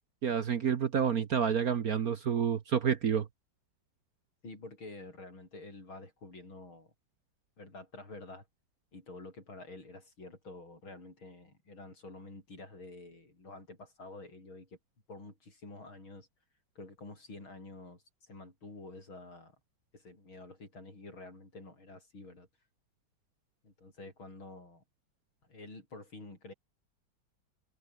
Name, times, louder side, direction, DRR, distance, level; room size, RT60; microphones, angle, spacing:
voice 1, 0.2-3.3, right 7 dB, 50° right, 1.4 m, -29 dB
voice 2, 4.4-6.9 7.6-8.5 8.9-14.8 15.1-16.3 16.7-19.5 19.9-22.5 23.6-24.8 25.5-26.5, left 2 dB, 75° left, 8.5 m, -49 dB
omnidirectional pair, 2.2 m